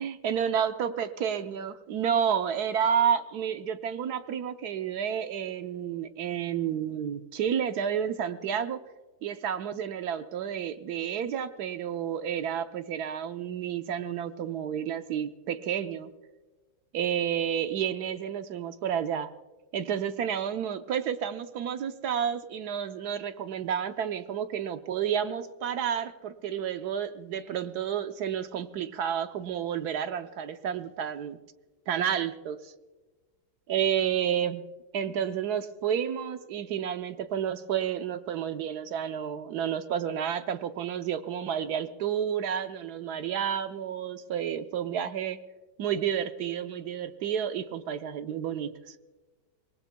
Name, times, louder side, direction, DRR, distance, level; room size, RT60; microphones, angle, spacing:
voice 1, 0.0-8.8 9.2-16.1 16.9-19.3 19.7-31.4 31.9-32.7 33.7-34.6 34.9-45.4 45.8-48.9, right 8 dB, 70° right, 9 dB, 1.2 m, -30 dB
25.5 x 19.0 x 2.2 m, 1.2 s
omnidirectional pair, 1.9 m